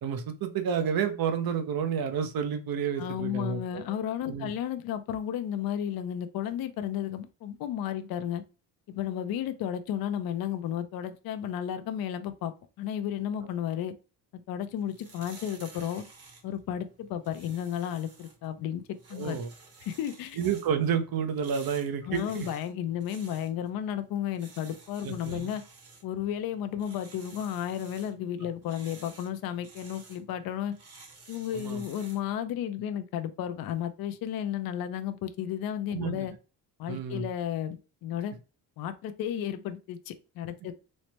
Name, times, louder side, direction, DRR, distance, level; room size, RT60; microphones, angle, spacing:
voice 1, 0.0-3.9 4.3-4.5 19.1-19.5 20.3-22.5 25.0-25.5 31.5-31.8 35.9-36.3 36.9-37.2, right 7 dB, 55° right, 0.7 m, -30 dB
voice 2, 3.0-8.4 8.9-13.9 14.3-16.0 16.4-18.8 19.1-19.4 19.8-20.4 22.0-25.6 26.0-30.7 31.3-36.3 36.8-38.3 38.8-40.7, left 10 dB, 55° left, 0.5 m, -33 dB
sound 1, 14.7-32.3, right 3 dB, 35° right, 1.0 m, -53 dB
3.2 x 2.0 x 2.8 m
cardioid pair, 90°, 43 cm